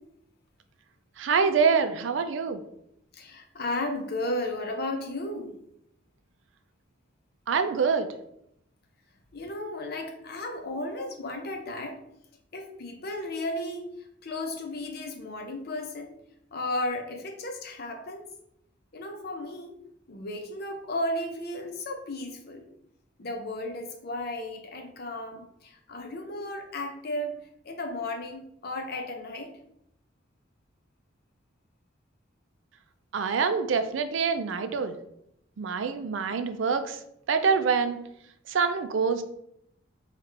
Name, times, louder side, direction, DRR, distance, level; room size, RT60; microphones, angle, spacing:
voice 1, 1.2-2.6 7.5-8.1 33.1-35.0 35.6-37.0 37.3-38.0 38.5-39.2, right 5 dB, 80° right, 9 dB, 0.4 m, -25 dB
voice 2, 3.1-5.5 9.3-12.0 12.5-13.9 14.2-16.1 16.5-18.2 18.9-19.7 20.1-22.6 23.2-29.5, left 1 dB, 55° left, 4 dB, 0.7 m, -34 dB
4.9 x 2.4 x 3.2 m, 0.75 s
head